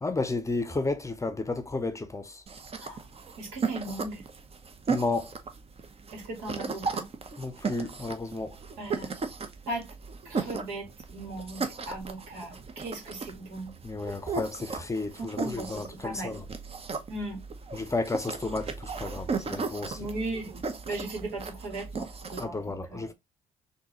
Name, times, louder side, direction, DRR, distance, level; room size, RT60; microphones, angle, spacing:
voice 1, 0.0-2.4 4.9-5.3 7.4-8.5 13.8-16.4 17.7-20.1 22.4-23.1, left 3 dB, 15° left, 0.7 m, -32 dB
sound 1, 2.5-22.4, right 4 dB, 35° right, 0.8 m, -36 dB
voice 2, 3.4-4.2 6.1-7.1 8.8-9.1 9.7-9.9 10.3-13.7 15.3-16.4 17.1-17.4 19.9-23.1, right 2 dB, 75° right, 1.9 m, -37 dB
3.8 x 2.7 x 2.9 m
hypercardioid pair, 55°, 17 cm